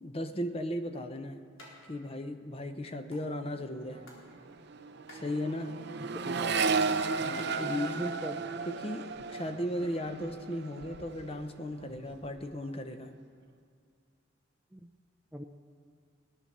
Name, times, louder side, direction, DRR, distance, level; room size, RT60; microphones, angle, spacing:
voice 1, 0.0-1.4 1.9-4.1 5.1-5.9 7.2-8.1 8.6-13.1, left 1 dB, 30° left, 8 dB, 0.7 m, -36 dB
sound 1, 1.6-1.7 2.1-2.2 2.4-3.2 3.7-4.3 4.5-7.5, left 1 dB, 75° left, 3.9 m, -53 dB
Accelerating revving vroom, 3.4-3.7 3.9-11.5 11.8-12.4, right 4 dB, 50° right, 0.6 m, -34 dB
voice 2, 6.0-6.5 7.6-8.4 14.7-14.9 15.3-15.4, equal, 5° right, 5 dB, 0.5 m, -40 dB
18.5 x 11.0 x 6.6 m, 2.2 s
head